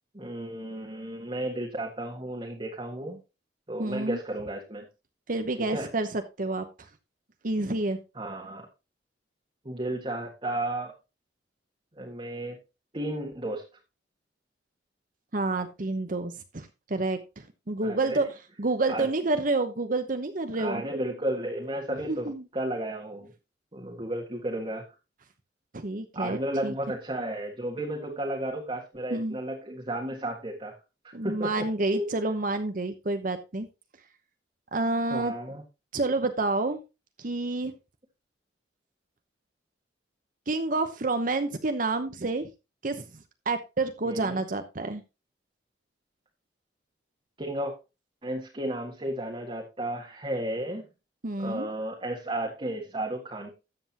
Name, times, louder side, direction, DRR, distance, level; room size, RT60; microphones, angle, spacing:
voice 1, 0.1-3.2 3.7-4.9 5.7-5.9 8.1-8.7 9.6-10.9 12.0-12.6 12.9-13.6 17.8-18.2 18.9-19.1 20.6-23.3 23.7-24.9 26.1-30.8 31.0-31.6 31.9-32.2 35.1-35.6 44.0-44.4 47.4-47.7 48.2-50.9 51.4-53.5, right 1 dB, 30° right, 0 dB, 1.6 m, -33 dB
voice 2, 3.8-4.2 5.3-6.1 6.4-6.6 7.4-8.0 15.3-18.3 18.6-20.8 22.1-22.4 25.7-26.7 29.1-29.4 31.1-33.7 34.7-35.3 35.9-36.8 37.2-37.7 40.5-42.5 42.8-43.1 43.5-45.0 51.2-51.7, right 2 dB, 45° right, 8 dB, 0.9 m, -29 dB
13.0 x 7.9 x 2.9 m, 0.27 s
head